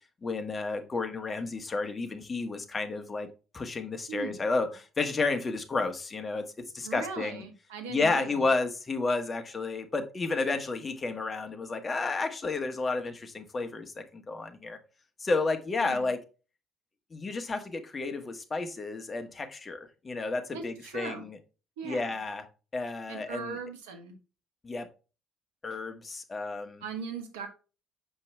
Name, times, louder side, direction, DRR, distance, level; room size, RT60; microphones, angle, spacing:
voice 1, 0.2-3.3 3.5-6.4 6.7-7.4 7.9-14.8 15.2-16.2 17.1-21.4 21.8-22.5 22.7-23.6 24.6-24.9 25.6-26.8, left 3 dB, 30° left, 7 dB, 1.5 m, -31 dB
voice 2, 6.8-8.4 15.8-16.1 20.5-21.3 21.8-22.2 23.1-24.2 26.8-27.5, right 5 dB, 80° right, 6 dB, 1.5 m, -39 dB
7.0 x 5.3 x 3.4 m, 0.33 s
hypercardioid pair, 55°, 0 cm